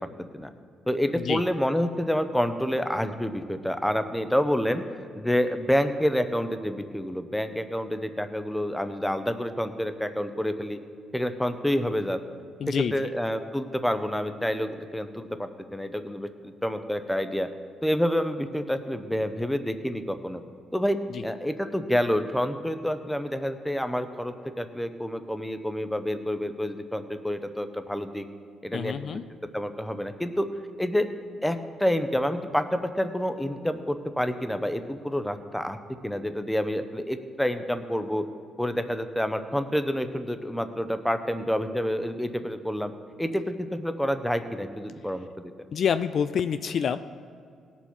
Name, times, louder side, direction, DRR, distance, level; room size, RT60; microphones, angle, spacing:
voice 1, 0.9-10.8 11.1-12.2 12.7-17.5 17.8-20.4 20.7-28.2 28.6-29.2 29.5-30.5 30.8-31.1 31.4-35.8 36.0-38.3 38.6-42.9 43.2-45.5, equal, 5° left, 9 dB, 0.8 m, -28 dB
voice 2, 12.6-12.9 28.7-29.2 45.7-47.0, left 7 dB, 55° left, 11 dB, 0.4 m, -27 dB
17.5 x 7.1 x 4.5 m, 2.3 s
cardioid pair, 90°, 0 cm